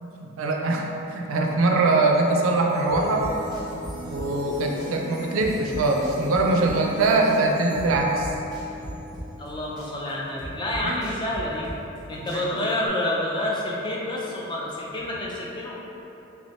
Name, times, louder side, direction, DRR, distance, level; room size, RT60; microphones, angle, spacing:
voice 1, 0.0-3.3 4.1-8.3 10.8-11.0 12.3-12.5, right 2 dB, 70° right, 1 dB, 0.4 m, -23 dB
sound 1, 1.7-11.0, left 1 dB, 85° left, 1.0 m, -38 dB
sound 2, 2.9-4.5 4.8-7.0 7.3-9.5 9.8-12.0 12.3-12.9, right 1 dB, 20° right, 0.6 m, -38 dB
voice 2, 9.4-11.7 12.1-15.7, left 1 dB, 20° left, -4 dB, 0.3 m, -28 dB
3.2 x 3.2 x 2.7 m, 3.0 s
head